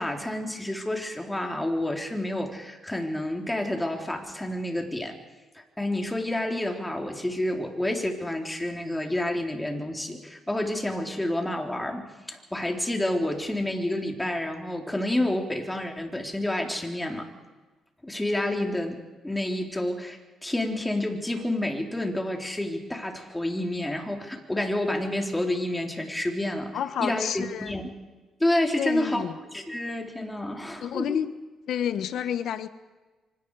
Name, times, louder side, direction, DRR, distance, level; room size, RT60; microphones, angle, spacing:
voice 1, 0.0-5.2 5.8-17.3 18.0-26.7 27.0-27.9 28.4-29.2 29.5-31.2, left 1 dB, 10° left, 2 dB, 3.7 m, -29 dB
voice 2, 26.7-27.7 28.8-29.4 30.8-31.3 31.7-32.7, left 9 dB, 70° left, 12 dB, 1.3 m, -29 dB
25.5 x 25.0 x 4.9 m, 1.3 s
cardioid pair, 90°, 0 cm